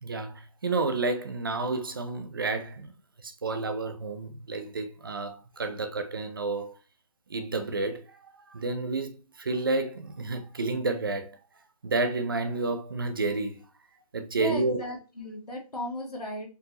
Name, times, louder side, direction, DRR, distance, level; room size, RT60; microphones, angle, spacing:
voice 1, 0.0-2.9 3.2-6.7 7.3-11.4 11.8-13.6 14.1-14.8, right 3 dB, 35° right, 0.5 m, -30 dB
voice 2, 14.4-16.5, left 1 dB, 90° left, 1.6 m, -36 dB
4.5 x 2.7 x 2.9 m
figure-of-eight pair, 155°, 19 cm